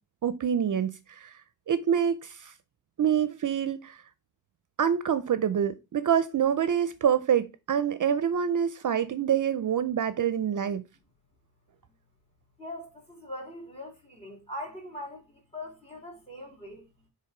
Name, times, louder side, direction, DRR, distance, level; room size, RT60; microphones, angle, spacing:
voice 1, 0.2-1.3 1.7-2.5 3.0-4.0 4.8-10.8, right 8 dB, 55° right, 0.5 m, -26 dB
voice 2, 12.6-16.8, left 1 dB, 15° left, 2.8 m, -41 dB
7.7 x 3.4 x 4.8 m
wide cardioid pair, 135°, 38 cm